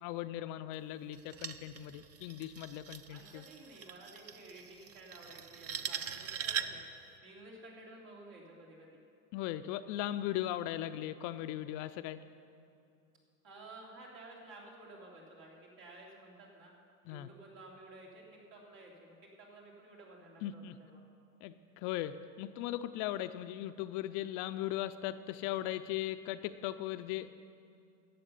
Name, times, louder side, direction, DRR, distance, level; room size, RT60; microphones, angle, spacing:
voice 1, 0.0-3.4 9.3-12.2 17.1-17.3 20.4-20.8 21.4-27.4, left 13 dB, 45° left, 11 dB, 0.4 m, -38 dB
sound 1, 1.1-6.9, right 8 dB, 35° right, 0.6 m, -42 dB
voice 2, 3.0-6.8 7.2-9.0 13.4-16.7 17.1-21.0, right 2 dB, 65° right, -2 dB, 3.6 m, -53 dB
11.5 x 7.5 x 8.2 m, 2.6 s
hypercardioid pair, 110°, 45 cm